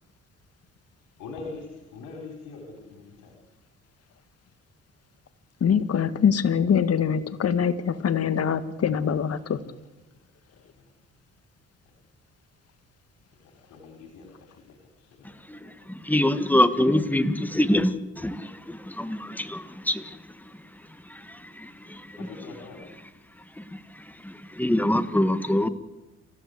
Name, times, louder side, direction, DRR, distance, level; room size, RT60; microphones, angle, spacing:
voice 1, 1.2-1.7 1.9-3.3 9.1-9.7 10.5-10.8 13.7-14.5 15.0-15.3 22.2-22.8, left 3 dB, 85° left, 1 dB, 4.5 m, -43 dB
voice 2, 5.6-9.6, left 7 dB, 55° left, 11 dB, 1.7 m, -23 dB
voice 3, 15.5-20.2 21.1-22.3 23.6-25.7, left 1 dB, 5° left, 10 dB, 1.7 m, -25 dB
27.5 x 15.5 x 8.1 m, 1.1 s
cardioid pair, 90°, 30 cm